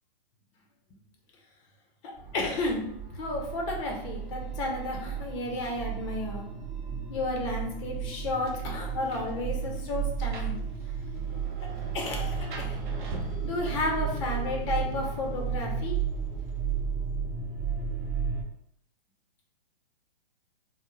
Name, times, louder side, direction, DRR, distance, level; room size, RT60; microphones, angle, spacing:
sound 1, 2.2-18.4, right 6 dB, 25° right, 0.8 m, -33 dB
voice 1, 2.3-2.8 3.1-6.4 7.1-10.6 11.6-11.7 11.9-12.8 13.4-16.0, left 2 dB, 30° left, 1 dB, 0.6 m, -32 dB
Rain, 7.9-17.0, right 3 dB, 55° right, 0.6 m, -47 dB
2.2 x 2.0 x 3.0 m, 0.76 s
hypercardioid pair, 130°, 30 cm